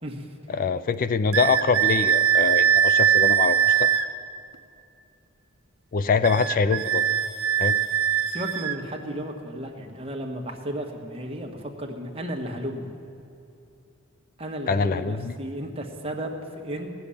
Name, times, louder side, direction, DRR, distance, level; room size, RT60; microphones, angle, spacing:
voice 1, 0.0-0.3 8.3-12.9 14.4-16.9, equal, 30° right, 2 dB, 1.4 m, -34 dB
voice 2, 0.5-3.9 5.9-7.0 7.6-7.8 14.7-15.3, left 5 dB, 40° left, 13 dB, 0.4 m, -24 dB
sound 1, 1.3-4.1 6.2-8.8, right 9 dB, 75° right, 0.8 m, -21 dB
17.0 x 7.0 x 9.9 m, 2.8 s
head